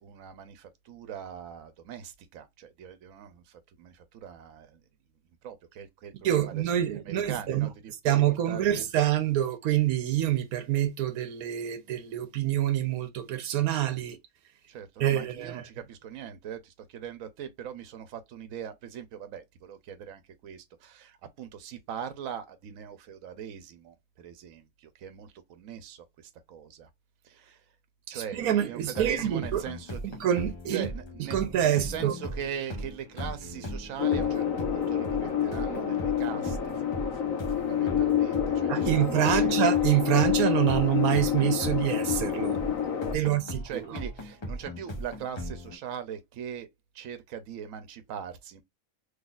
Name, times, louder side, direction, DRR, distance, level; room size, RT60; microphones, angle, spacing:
voice 1, 0.0-4.8 5.4-6.7 7.0-7.7 8.5-8.8 14.7-26.9 27.2-27.6 28.1-30.2 30.7-34.4 34.7-36.7 37.1-37.2 37.6-39.5 43.1-46.7 46.9-48.6, right 8 dB, 70° right, 1.1 m, -41 dB
voice 2, 6.2-7.7 8.0-14.2 15.0-15.6 28.1-29.6 30.2-30.9 31.3-32.1 38.7-42.6 43.1-43.9, right 11 dB, 90° right, 1.2 m, -26 dB
sound 1, 29.0-45.8, equal, 25° left, 0.7 m, -39 dB
sound 2, 34.0-43.1, left 9 dB, 70° left, 1.2 m, -28 dB
3.9 x 3.1 x 2.3 m
omnidirectional pair, 1.5 m